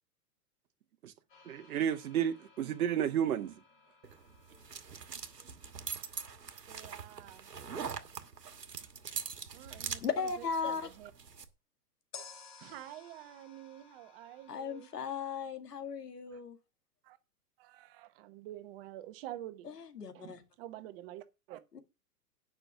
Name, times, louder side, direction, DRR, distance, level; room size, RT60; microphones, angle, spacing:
sound 1, 1.3-9.3 12.1-15.5, left 5 dB, 25° left, 3.9 m, -58 dB
voice 1, 1.5-3.5, right 9 dB, 60° right, 0.9 m, -31 dB
sound 2, 4.0-11.5, right 6 dB, 80° right, 1.4 m, -43 dB
voice 2, 6.7-7.5 9.5-11.1 12.6-14.9 16.3-16.4 17.0-17.2 17.6-19.7 20.1-21.6, right 14 dB, 35° right, 1.0 m, -48 dB
voice 3, 10.0-10.9 14.5-16.6 19.6-20.4 21.7-21.8, left 5 dB, 75° left, 2.1 m, -36 dB
10.0 x 5.9 x 5.7 m
figure-of-eight pair, 110°, 48 cm